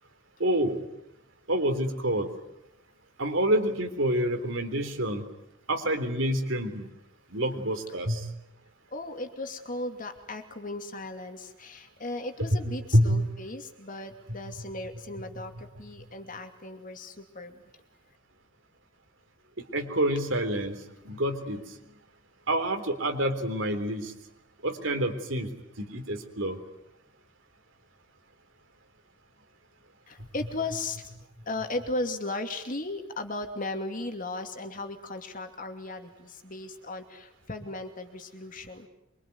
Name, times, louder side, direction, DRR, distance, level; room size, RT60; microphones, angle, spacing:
voice 1, 0.4-0.8 1.5-2.3 3.2-5.2 5.7-6.9 7.3-8.2 12.4-12.6 12.9-13.2 19.7-20.8 21.1-21.6 22.5-24.1 24.6-25.5 25.8-26.6, right 1 dB, 65° right, 7 dB, 3.7 m, -27 dB
voice 2, 8.9-17.8 30.1-31.1 31.5-38.9, left 2 dB, 40° left, 6 dB, 2.7 m, -36 dB
25.0 x 24.5 x 9.6 m, 0.85 s
head